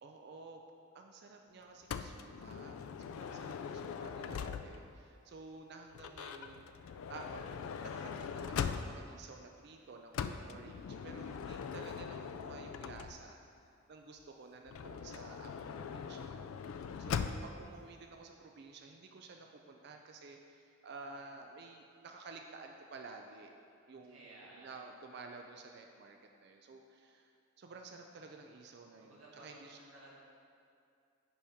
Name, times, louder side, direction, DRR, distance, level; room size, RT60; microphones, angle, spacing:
voice 1, 0.0-0.6 0.9-6.7 7.1-13.4 13.9-16.4 16.7-23.5 23.9-29.8, right 3 dB, 50° right, 3 dB, 0.4 m, -52 dB
Motor vehicle (road) / Sliding door, 1.9-5.0 5.9-9.2 10.1-13.4 14.7-17.6, left 6 dB, 80° left, 0.3 m, -41 dB
voice 2, 24.1-24.7 29.0-30.1, right 1 dB, 80° right, -6 dB, 1.7 m, -56 dB
9.7 x 4.3 x 3.5 m, 2.5 s
head